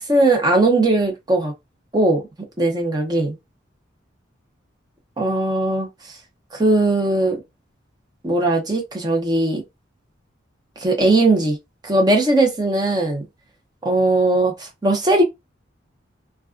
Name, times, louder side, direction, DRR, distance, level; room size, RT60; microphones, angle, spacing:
voice 1, 0.0-1.5 1.9-2.2 2.6-3.4 5.2-5.9 6.5-7.4 8.2-9.6 10.8-11.6 11.8-13.2 13.8-15.2, right 2 dB, 20° right, 0.7 m, -19 dB
2.3 x 2.3 x 2.4 m
head